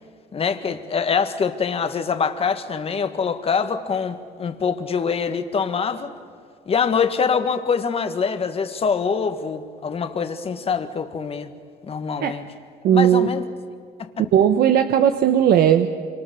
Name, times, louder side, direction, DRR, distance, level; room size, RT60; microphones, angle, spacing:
voice 1, 0.3-6.1 6.7-11.5 11.8-12.4 12.9-13.4 14.0-14.3, left 6 dB, 35° left, 8 dB, 1.6 m, -24 dB
voice 2, 12.8-13.3 14.3-15.9, right 9 dB, 70° right, 8 dB, 1.0 m, -16 dB
26.0 x 26.0 x 7.0 m, 2.1 s
cardioid pair, 110°, 17 cm